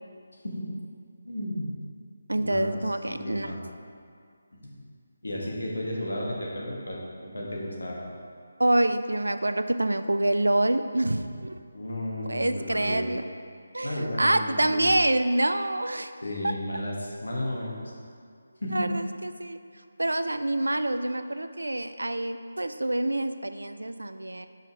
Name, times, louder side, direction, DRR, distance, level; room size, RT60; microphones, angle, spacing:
voice 1, 1.2-1.7 2.4-3.6 4.6-4.8 5.2-7.0 7.3-8.0 11.7-13.0 13.8-14.9 16.2-17.9 18.6-18.9, left 1 dB, 70° left, -3 dB, 1.7 m, -33 dB
voice 2, 2.3-3.5 8.6-11.6 12.3-13.2 13.7-16.1 18.7-19.6 20.0-24.5, right 1 dB, 75° right, 10 dB, 0.4 m, -26 dB
5.6 x 5.5 x 4.6 m, 2.2 s
figure-of-eight pair, 155°, 0 cm